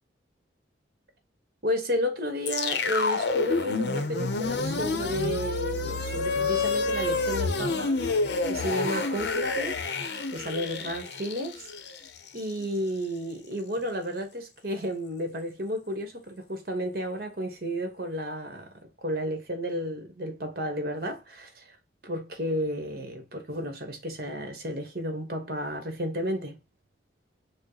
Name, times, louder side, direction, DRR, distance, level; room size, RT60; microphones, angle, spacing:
voice 1, 1.6-8.0 8.5-11.6 12.3-18.7 19.0-21.6 22.0-26.6, equal, 55° right, 1.3 m, -32 dB
sound 1, 2.5-12.7, left 3 dB, 70° left, 0.7 m, -29 dB
6.2 x 2.1 x 4.0 m
head